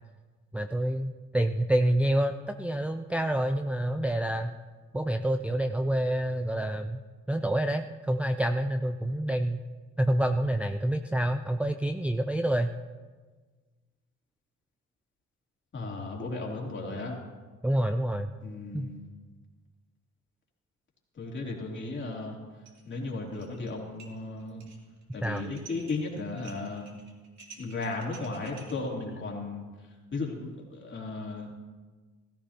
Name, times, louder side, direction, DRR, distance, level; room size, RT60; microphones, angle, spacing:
voice 1, 0.5-4.5 4.9-7.0 7.3-9.6 10.0-12.7 17.6-18.3 18.7-18.9 25.2-25.4, right 1 dB, 5° right, 5 dB, 0.5 m, -27 dB
voice 2, 15.7-17.2 18.4-19.0 21.1-22.4 22.8-24.7 25.1-27.0 27.6-31.5, left 3 dB, 40° left, -2 dB, 3.2 m, -35 dB
sound 1, 22.7-22.9 23.2-23.7 24.0-28.7, right 4 dB, 60° right, 2.9 m, -51 dB
16.5 x 14.0 x 2.9 m, 1.4 s
cardioid pair, 90°, 30 cm